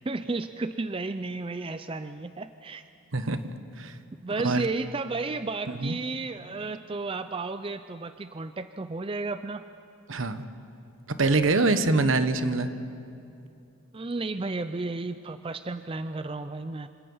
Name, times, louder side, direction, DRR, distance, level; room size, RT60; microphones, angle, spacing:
voice 1, 0.1-2.8 4.2-9.6 13.9-16.9, right 3 dB, 25° right, 11 dB, 0.4 m, -33 dB
voice 2, 10.1-10.4 11.2-12.7, right 3 dB, 70° right, 10 dB, 1.2 m, -24 dB
27.0 x 26.5 x 5.6 m, 2.6 s
head